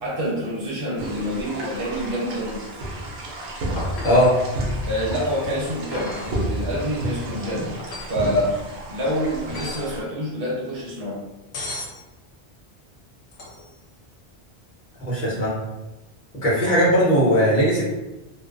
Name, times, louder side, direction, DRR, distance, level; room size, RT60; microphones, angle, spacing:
voice 1, 0.0-2.6 4.9-7.7 8.1-8.5 8.9-11.2 16.6-16.8, equal, 60° right, -6 dB, 1.0 m, -27 dB
sound 1, 1.0-10.0, right 1 dB, 90° right, 0.9 m, -31 dB
sound 2, 3.8-4.4 5.9-6.4 7.8-8.2 9.5-10.0 11.5-12.0 13.3-13.8 16.6-16.7, left 2 dB, 90° left, 0.9 m, -35 dB
voice 2, 15.0-15.5 16.4-17.8, equal, 50° left, -9 dB, 1.0 m, -18 dB
2.4 x 2.2 x 2.4 m, 1.0 s
omnidirectional pair, 1.1 m